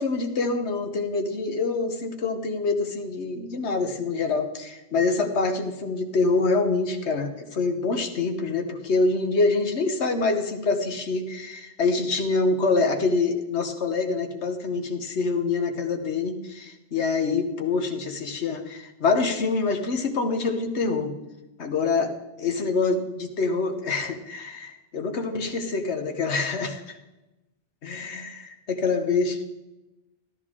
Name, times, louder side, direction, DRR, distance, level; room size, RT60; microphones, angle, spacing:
voice 1, 0.0-21.1 21.6-22.1 22.4-27.0 27.8-29.4, left 3 dB, 85° left, 5 dB, 1.4 m, -26 dB
13.0 x 12.5 x 3.7 m, 1.0 s
omnidirectional pair, 1.1 m